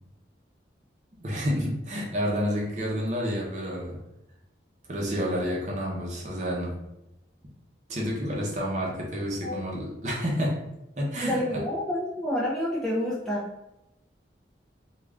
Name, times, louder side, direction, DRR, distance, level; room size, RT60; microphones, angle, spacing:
voice 1, 1.2-4.0 4.9-6.8 7.9-10.7 11.0-11.6, equal, 40° right, -3 dB, 0.7 m, -29 dB
voice 2, 11.3-13.5, left 1 dB, 5° left, -7 dB, 0.4 m, -28 dB
2.4 x 2.3 x 3.3 m, 0.91 s
head